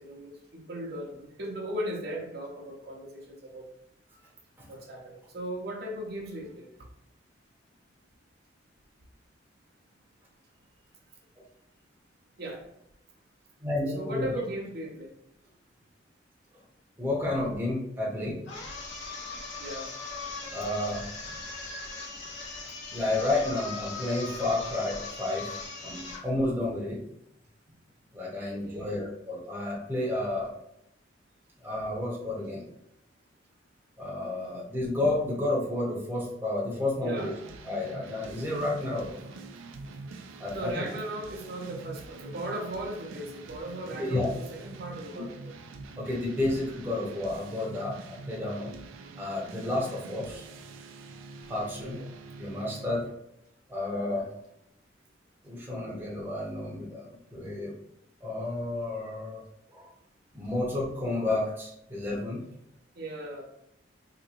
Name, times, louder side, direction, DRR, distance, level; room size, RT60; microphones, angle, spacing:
voice 1, 0.0-3.7 4.7-6.7 12.4-12.7 13.9-15.1 19.6-19.9 28.5-28.9 37.0-37.3 40.5-45.5 51.8-52.2 63.0-63.4, right 1 dB, 55° right, -1 dB, 0.7 m, -37 dB
voice 2, 13.6-14.3 17.0-18.4 20.5-21.1 22.9-25.6 25.8-27.0 28.1-30.5 31.6-32.7 34.0-37.3 37.6-39.2 40.4-40.8 44.0-44.3 45.1-45.3 46.0-48.7 49.2-50.5 51.5-52.0 52.4-53.1 53.7-54.3 55.4-57.8 58.2-59.9 60.3-62.4, left 2 dB, 10° right, -4 dB, 0.7 m, -31 dB
sound 1, 18.5-26.3, left 3 dB, 75° left, 0.9 m, -39 dB
sound 2, 37.1-53.1, right 3 dB, 90° right, 0.4 m, -45 dB
3.8 x 2.9 x 2.4 m, 0.77 s
head